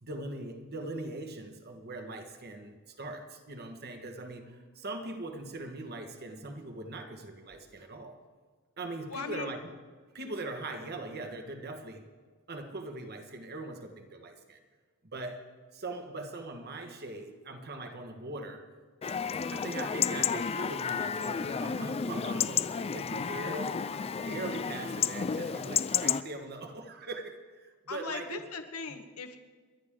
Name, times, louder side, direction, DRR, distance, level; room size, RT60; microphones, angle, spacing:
voice 1, 0.0-8.2 8.8-9.7 10.1-12.1 12.5-14.6 15.1-18.7 19.5-24.0 24.2-28.4, right 2 dB, 45° right, 6 dB, 1.5 m, -41 dB
voice 2, 9.1-9.5 27.9-29.4, left 4 dB, 75° left, 6 dB, 1.4 m, -39 dB
Chatter / Livestock farm animals working animals / Chirp tweet, 19.0-26.2, left 7 dB, 25° left, 0.4 m, -31 dB
30.0 x 11.5 x 3.8 m, 1.5 s
head